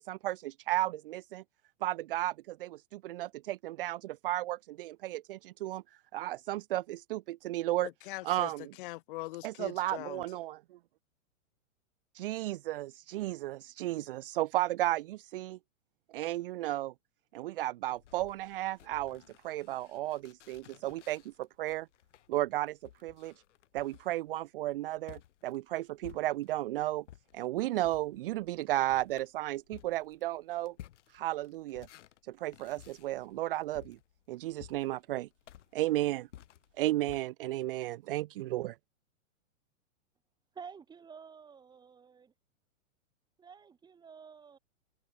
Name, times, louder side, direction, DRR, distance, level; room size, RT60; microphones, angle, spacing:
voice 1, 0.0-1.4 1.8-5.8 6.1-7.9 8.2-8.6 9.4-10.8 12.1-15.6 16.1-16.9 17.3-21.9 22.3-23.3 23.7-27.0 27.3-30.7 31.1-31.9 32.3-34.0 34.3-35.3 35.7-36.3 36.8-38.8, right 16 dB, 40° right, 1.3 m, -34 dB
voice 2, 7.8-10.2, left 19 dB, 40° left, 3.3 m, -42 dB
sound 1, 17.9-26.7 27.0-37.2, left 12 dB, 60° left, 4.1 m, -56 dB
voice 3, 40.5-42.3 43.4-44.6, right 6 dB, 10° right, 6.4 m, -50 dB
hypercardioid pair, 165°, 42 cm